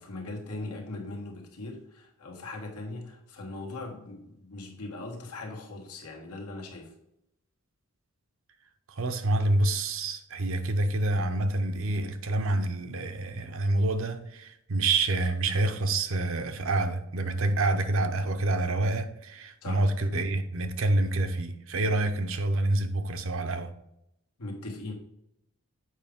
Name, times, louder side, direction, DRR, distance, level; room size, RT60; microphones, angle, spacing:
voice 1, 0.0-6.9 19.6-19.9 24.4-24.9, left 2 dB, 85° left, 1.6 m, -39 dB
voice 2, 8.9-23.7, right 2 dB, 65° right, 0.7 m, -27 dB
7.3 x 5.0 x 3.6 m
head